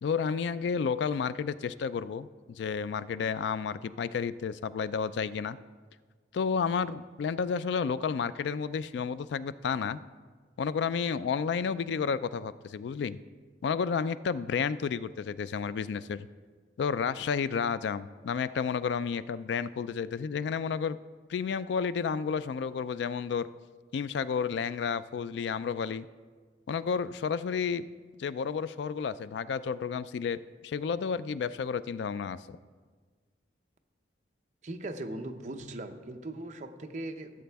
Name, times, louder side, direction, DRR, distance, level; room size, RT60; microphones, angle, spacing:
voice 1, 0.0-2.3 2.6-5.6 6.3-10.0 10.6-13.2 13.6-16.3 16.8-21.0 21.3-23.5 23.9-26.1 26.7-27.9 28.2-32.6, left 6 dB, 70° left, 15 dB, 0.3 m, -31 dB
voice 2, 34.6-37.4, right 1 dB, 40° right, 6 dB, 0.6 m, -39 dB
15.5 x 7.5 x 3.5 m, 1.5 s
head